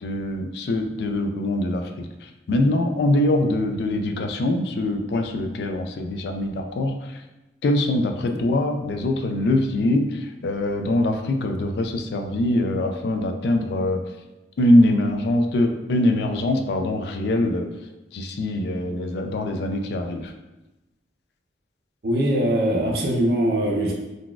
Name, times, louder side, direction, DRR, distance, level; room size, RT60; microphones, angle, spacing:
voice 1, 0.0-2.1 2.5-7.0 7.6-10.1 10.4-14.0 14.6-17.7 18.1-20.3, left 1 dB, 65° left, 5 dB, 0.3 m, -23 dB
voice 2, 22.0-23.9, right 1 dB, 60° right, -1 dB, 0.6 m, -21 dB
3.8 x 2.3 x 2.3 m, 1.0 s
head